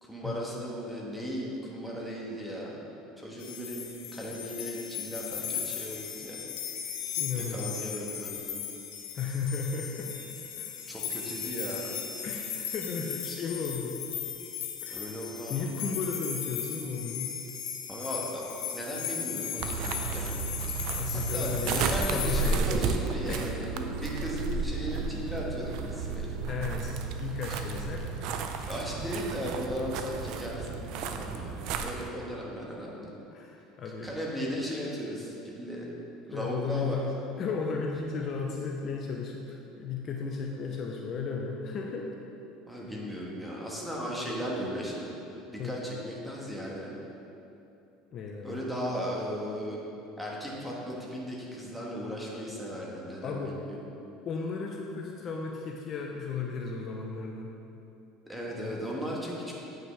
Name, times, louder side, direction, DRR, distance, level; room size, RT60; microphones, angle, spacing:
voice 1, 0.0-2.8 3.2-6.4 7.3-8.7 10.9-11.9 14.9-15.7 17.9-20.4 21.3-26.3 28.7-33.1 34.0-35.9 36.3-37.0 42.7-45.1 45.5-46.9 48.4-49.8 50.2-53.8 58.3-59.5, equal, ahead, -4 dB, 1.3 m, -36 dB
sound 1, 3.4-22.6, left 8 dB, 85° left, 0.8 m, -37 dB
voice 2, 7.2-7.7 9.1-10.7 12.2-14.0 14.8-15.2 15.5-17.3 21.0-22.8 23.3-23.4 26.5-28.1 31.9-32.1 33.3-34.1 36.3-42.1 45.6-45.8 48.1-48.6 53.2-53.6 54.3-57.5, left 5 dB, 40° left, 0 dB, 0.6 m, -35 dB
sound 2, 19.6-32.1, right 5 dB, 65° right, 0.5 m, -33 dB
8.8 x 5.7 x 3.3 m, 2.9 s
supercardioid pair, 120°, 0 cm